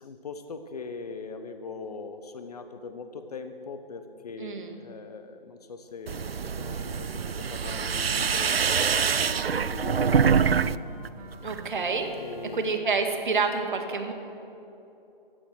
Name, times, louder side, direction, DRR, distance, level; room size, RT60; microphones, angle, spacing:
voice 1, 0.0-10.8 12.2-12.6, left 4 dB, 40° left, 8 dB, 1.0 m, -41 dB
voice 2, 4.4-4.8 11.4-12.1 12.5-14.1, right 4 dB, 55° right, 5 dB, 2.2 m, -28 dB
sound 1, 6.1-10.8 11.1-11.7, right 6 dB, 85° right, 0.5 m, -25 dB
Wind instrument woodwind instrument, 6.5-12.9, right 1 dB, 35° right, 2.9 m, -45 dB
16.5 x 13.0 x 6.5 m, 2.9 s
figure-of-eight pair, 145°, 29 cm